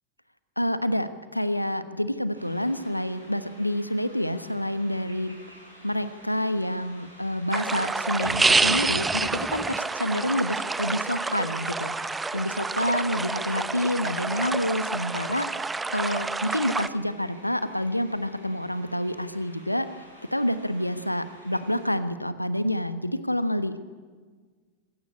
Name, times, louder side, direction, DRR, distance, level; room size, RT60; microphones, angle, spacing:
voice 1, 0.6-5.3 5.8-15.5 15.9-19.9 20.3-23.8, left 1 dB, 90° left, 12 dB, 1.2 m, -28 dB
sound 1, 2.3-21.9, equal, 85° right, 6.7 m, -51 dB
sound 2, 7.5-16.9, right 3 dB, 10° right, 0.8 m, -28 dB
25.0 x 17.0 x 8.6 m, 1.5 s
figure-of-eight pair, 90°, 0 cm